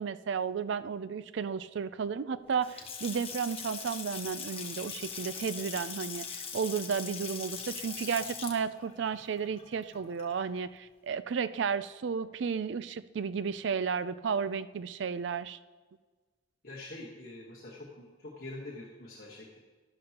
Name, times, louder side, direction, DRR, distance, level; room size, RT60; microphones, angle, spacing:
voice 1, 0.0-15.6, right 6 dB, 65° right, 15 dB, 0.4 m, -33 dB
Water tap faucet / Sink (filling or washing) / Splash splatter, 2.5-10.6, left 6 dB, 30° left, 1.0 m, -41 dB
voice 2, 16.6-19.6, left 2 dB, 50° left, -4 dB, 1.4 m, -45 dB
11.5 x 11.5 x 2.9 m, 1.3 s
head